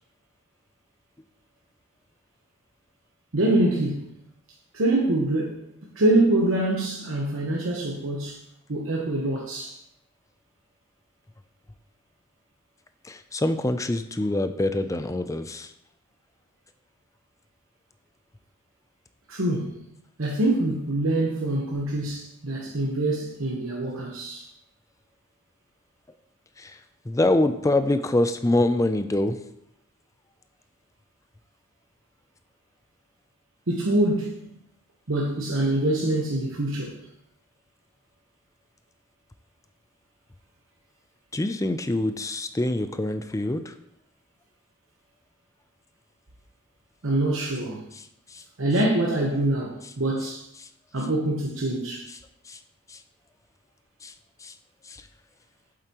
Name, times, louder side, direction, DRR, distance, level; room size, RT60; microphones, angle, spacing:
voice 1, 3.3-4.1 4.7-5.7 5.9-8.4 8.7-9.8 19.3-19.8 20.2-24.4 33.7-34.4 35.1-37.0 47.0-47.8 48.6-50.4 50.9-52.1, right 1 dB, 80° right, 1.1 m, -25 dB
voice 2, 13.0-15.7 26.6-26.8 27.1-29.4 41.3-43.7 48.3-48.4 52.5-52.6 52.9-53.0 54.0-54.1 54.4-54.5 54.9-55.0, left 1 dB, 15° left, 0.4 m, -25 dB
8.0 x 7.6 x 3.0 m
head